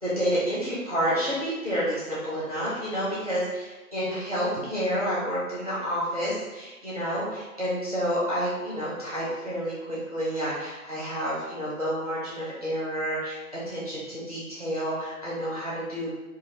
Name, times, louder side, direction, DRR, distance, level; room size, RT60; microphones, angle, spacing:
voice 1, 0.0-13.4 13.7-16.1, equal, 25° right, -9 dB, 0.8 m, -29 dB
2.9 x 2.5 x 4.2 m, 1.2 s
figure-of-eight pair, 155°, 45 cm